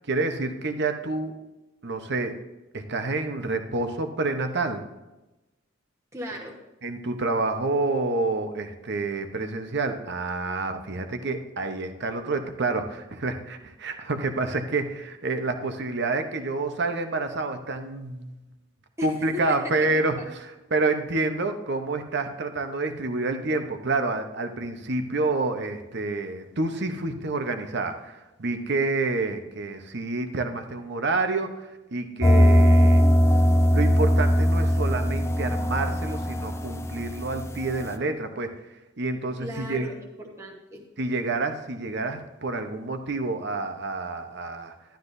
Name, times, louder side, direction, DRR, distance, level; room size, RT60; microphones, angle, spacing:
voice 1, 0.1-1.3 1.8-2.4 2.7-4.8 6.8-18.4 19.0-20.1 20.7-33.0 33.7-38.5 39.0-39.9 41.0-44.7, right 3 dB, 55° right, 7 dB, 0.9 m, -28 dB
voice 2, 6.1-6.6 19.0-19.9 20.2-20.3 39.4-40.8, left 1 dB, 15° right, -1 dB, 1.2 m, -37 dB
sound 1, 32.2-37.9, equal, 15° left, 0.5 m, -20 dB
11.5 x 11.5 x 2.7 m, 1.0 s
head